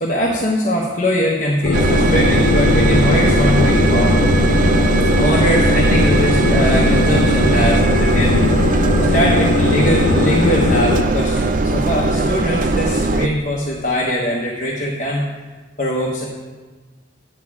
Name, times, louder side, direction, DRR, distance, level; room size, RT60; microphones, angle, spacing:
voice 1, 0.0-4.2 5.2-8.8 9.1-15.2 15.8-16.3, equal, 40° left, -2 dB, 1.1 m, -21 dB
sound 1, 1.6-11.0, left 4 dB, 85° left, 0.4 m, -19 dB
Engine, 1.7-13.3, right 3 dB, 40° right, 0.4 m, -18 dB
10.5 x 9.3 x 4.8 m, 1.4 s
head